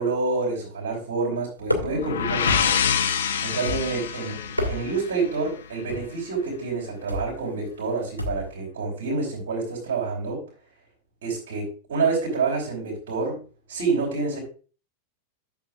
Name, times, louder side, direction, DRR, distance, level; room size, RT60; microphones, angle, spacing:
voice 1, 0.0-2.7 3.4-4.3 4.7-10.4 11.2-13.4 13.7-14.4, right 4 dB, 60° right, -3 dB, 3.9 m, -27 dB
sound 1, 1.6-2.1 2.5-2.9 3.6-4.1 4.4-5.1 5.9-6.2 7.1-7.4 8.2-8.5, left 1 dB, 85° right, 1.8 m, -29 dB
sound 2, 1.8-5.6, left 8 dB, 65° left, 0.9 m, -26 dB
12.0 x 7.2 x 2.5 m, 0.37 s
figure-of-eight pair, 90°, 0 cm